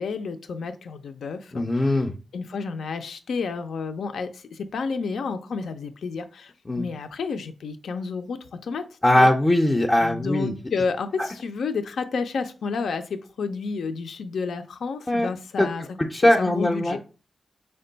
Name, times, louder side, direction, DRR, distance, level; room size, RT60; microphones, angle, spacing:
voice 1, 0.0-2.0 2.3-8.8 9.1-9.3 10.0-15.8 16.2-17.0, left 4 dB, 85° left, 0.5 m, -31 dB
voice 2, 1.5-2.1 6.7-6.9 9.0-10.5 15.1-15.3 15.6-15.7 16.0-17.0, left 1 dB, 25° left, 0.5 m, -20 dB
4.9 x 2.2 x 3.9 m
cardioid pair, 70°, 0 cm